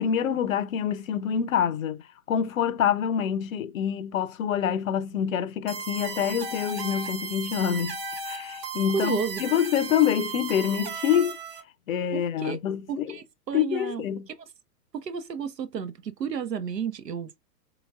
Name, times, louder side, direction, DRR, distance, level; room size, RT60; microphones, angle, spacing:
voice 1, 0.0-8.0 8.2-11.4 11.9-13.2 13.5-14.3, left 9 dB, 55° left, 0.6 m, -26 dB
sound 1, 5.7-11.6, right 4 dB, 20° right, 0.5 m, -35 dB
voice 2, 8.9-9.4 12.1-12.6 12.9-14.1 14.9-17.4, right 6 dB, 75° right, 0.7 m, -32 dB
3.8 x 3.4 x 2.3 m
figure-of-eight pair, 110°, 49 cm